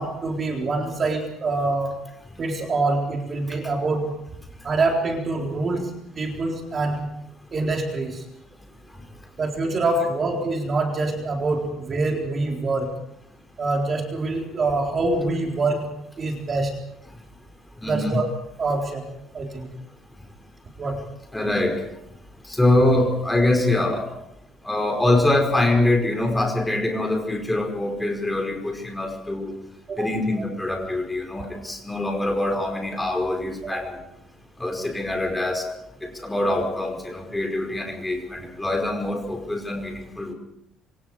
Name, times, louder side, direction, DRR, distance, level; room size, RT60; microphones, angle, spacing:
voice 1, 0.0-2.1 2.4-4.1 4.6-7.2 7.5-8.3 9.4-12.9 13.6-16.8 17.8-18.3 18.6-19.1 19.3-19.7 20.8-21.1 29.9-30.1 33.6-34.0, right 3 dB, 30° right, 1 dB, 3.9 m, -25 dB
voice 2, 17.8-18.2 21.3-21.8 22.5-24.1 24.6-29.5 30.0-34.0 34.6-35.7 36.0-40.3, left 1 dB, 5° left, 2 dB, 5.1 m, -24 dB
27.0 x 26.0 x 4.9 m, 0.77 s
cardioid pair, 160°, 0 cm